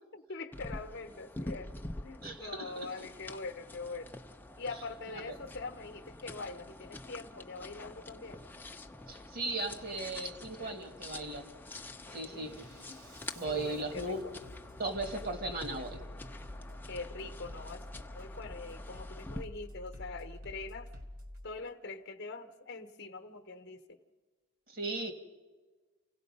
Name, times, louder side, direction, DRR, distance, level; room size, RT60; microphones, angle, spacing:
voice 1, 0.1-1.7 2.0-4.1 4.6-8.4 12.1-13.0 13.4-14.3 16.8-17.8 18.1-20.9 21.4-24.0, left 3 dB, 50° left, 0.9 m, -43 dB
sound 1, 0.5-19.4, left 2 dB, 10° left, 0.6 m, -47 dB
voice 2, 2.2-3.1 5.1-5.2 9.1-11.5 12.1-12.6 13.3-14.2 14.8-16.0 24.7-25.1, right 2 dB, 45° right, 1.6 m, -37 dB
Bass drum, 5.7-5.9 6.3-6.8 7.6-7.9 8.3-8.8 9.6-9.9 10.3-10.8 11.2-21.4, left 1 dB, 65° right, 3.1 m, -49 dB
28.5 x 17.5 x 5.3 m
head